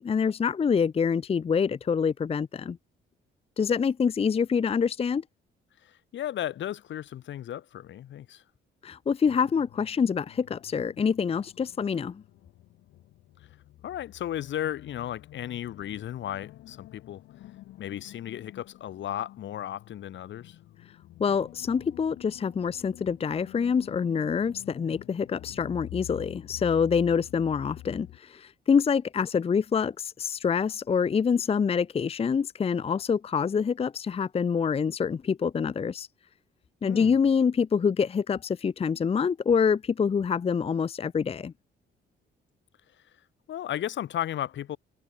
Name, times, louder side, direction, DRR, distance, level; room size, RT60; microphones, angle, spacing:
voice 1, 0.0-2.8 3.6-5.2 8.8-12.2 21.2-36.1 36.8-41.5, left 6 dB, 30° left, 0.6 m, -26 dB
voice 2, 5.8-8.4 13.8-17.2 17.8-20.6 36.8-37.1 43.5-44.8, left 11 dB, 70° left, 1.7 m, -35 dB
sound 1, 9.2-28.2, left 15 dB, 85° left, 1.8 m, -48 dB
cardioid pair, 90°, 20 cm